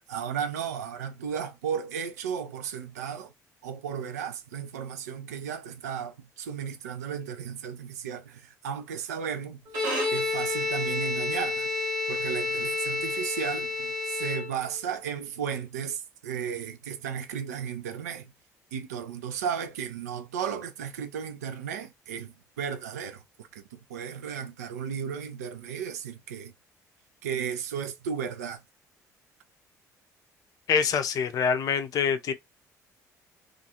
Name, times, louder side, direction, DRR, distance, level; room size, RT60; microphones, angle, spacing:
voice 1, 0.1-3.3 3.6-9.6 10.1-18.3 18.7-26.5 27.2-28.6, right 7 dB, 75° right, 0.4 m, -34 dB
Bowed string instrument, 9.7-14.9, left 3 dB, 55° right, 1.1 m, -30 dB
voice 2, 30.7-32.3, left 6 dB, 45° left, 0.5 m, -25 dB
2.4 x 2.3 x 2.7 m
figure-of-eight pair, 50°, 9 cm